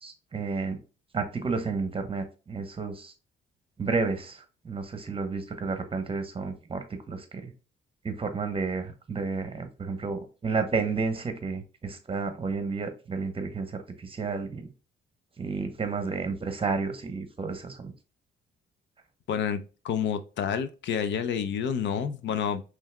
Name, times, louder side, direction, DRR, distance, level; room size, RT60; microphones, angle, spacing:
voice 1, 0.0-0.8 1.1-3.1 3.8-7.5 8.0-14.7 15.4-17.9, right 4 dB, 25° right, 0.9 m, -31 dB
voice 2, 19.3-19.6 19.8-22.6, left 8 dB, 65° left, 0.6 m, -29 dB
5.5 x 3.2 x 2.2 m
cardioid pair, 90°, 20 cm